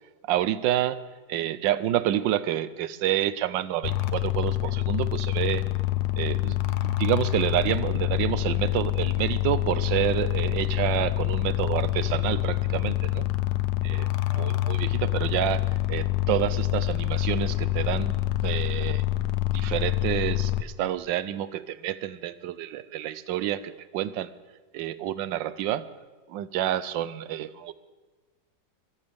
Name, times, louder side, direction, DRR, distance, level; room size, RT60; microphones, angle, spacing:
voice 1, 0.3-1.0 1.3-5.6 6.2-6.6 6.8-13.3 13.8-18.1 18.4-19.0 19.5-24.3 24.7-25.9 26.3-27.7, right 12 dB, 85° right, 15 dB, 1.3 m, -28 dB
sound 1, 3.8-20.6, left 15 dB, 70° left, 1.2 m, -26 dB
21.5 x 14.0 x 3.5 m, 1.3 s
omnidirectional pair, 2.0 m